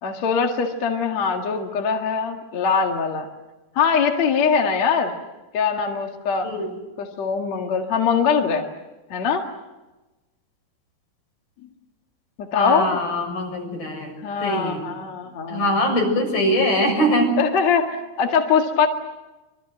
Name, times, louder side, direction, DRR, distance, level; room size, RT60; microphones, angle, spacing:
voice 1, 0.0-3.3 3.8-5.1 5.5-6.5 7.0-8.7 9.1-9.5 12.4-13.0 14.2-15.8 17.4-18.9, left 6 dB, 50° left, 2 dB, 2.9 m, -22 dB
voice 2, 6.4-6.8 12.5-14.1 14.4-14.8 15.5-17.4, equal, 75° left, 2 dB, 8.8 m, -22 dB
26.5 x 24.5 x 7.8 m, 1.1 s
omnidirectional pair, 4.3 m